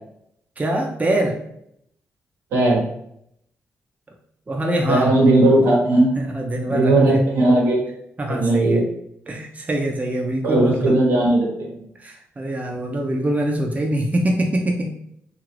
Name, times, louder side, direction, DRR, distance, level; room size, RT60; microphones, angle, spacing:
voice 1, 0.6-1.4 4.5-5.1 6.2-7.2 8.2-8.8 9.3-10.9 12.0-14.9, right 1 dB, 30° right, 1 dB, 0.6 m, -24 dB
voice 2, 2.5-2.8 4.9-6.1 6.7-7.9 8.3-8.8 10.4-11.8, right 2 dB, 85° right, -3 dB, 1.0 m, -17 dB
2.8 x 2.5 x 3.1 m, 0.73 s
supercardioid pair, 50°, 5 cm